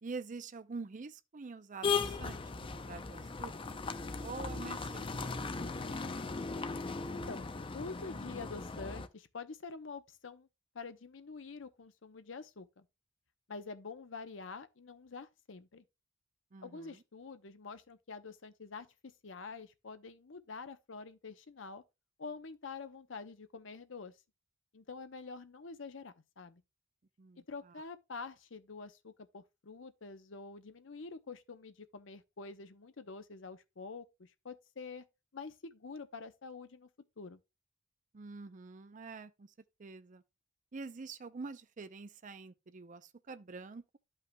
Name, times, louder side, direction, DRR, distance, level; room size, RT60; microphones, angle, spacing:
voice 1, 0.0-3.8 4.2-5.4 5.8-6.6 16.5-17.0 27.2-27.7 38.1-39.5 39.8-40.2 40.7-43.8, right 4 dB, 40° right, 0.5 m, -46 dB
sound 1, 1.8-9.1, left 4 dB, 25° left, 0.5 m, -38 dB
voice 2, 7.1-7.5 7.7-10.5 10.7-12.9 13.5-15.8 16.6-21.8 22.2-24.2 24.7-26.6 27.5-35.1 35.3-36.9 37.2-37.4, left 4 dB, 75° left, 0.8 m, -47 dB
12.5 x 5.5 x 2.2 m
head